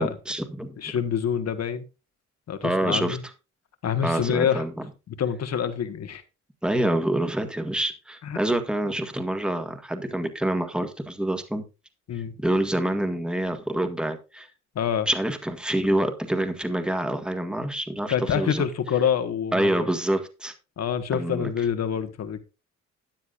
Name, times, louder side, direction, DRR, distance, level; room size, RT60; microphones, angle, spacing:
voice 1, 0.0-0.7 2.6-3.2 4.0-4.7 6.6-11.6 12.4-14.5 15.1-18.6 19.5-20.5 21.1-21.5, right 1 dB, 5° right, 1.6 m, -26 dB
voice 2, 0.8-1.8 2.5-3.2 3.8-4.6 5.1-6.2 8.2-8.4 12.1-12.3 14.7-15.1 18.1-19.9 20.8-22.4, left 8 dB, 60° left, 1.5 m, -26 dB
13.5 x 9.4 x 2.5 m
cardioid pair, 90°, 30 cm